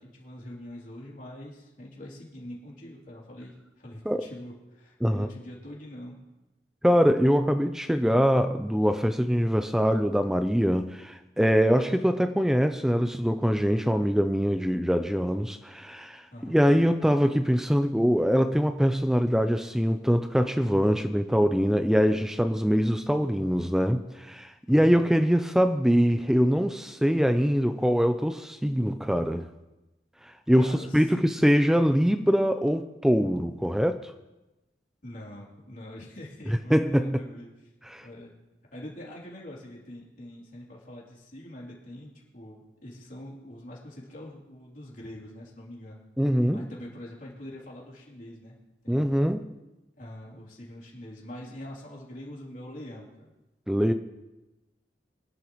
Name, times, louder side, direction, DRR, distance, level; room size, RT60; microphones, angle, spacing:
voice 1, 0.0-6.2 16.3-16.6 24.7-25.0 30.5-31.2 35.0-37.5 38.0-38.4 38.7-46.0 46.5-48.6 48.8-49.1 50.0-53.3, left 1 dB, 50° left, -4 dB, 3.2 m, -44 dB
voice 2, 6.8-29.5 30.2-34.1 36.5-37.2 37.9-38.1 46.2-46.7 48.9-49.5 53.7-53.9, equal, 5° right, 8 dB, 0.5 m, -23 dB
23.5 x 11.0 x 3.1 m, 1.0 s
head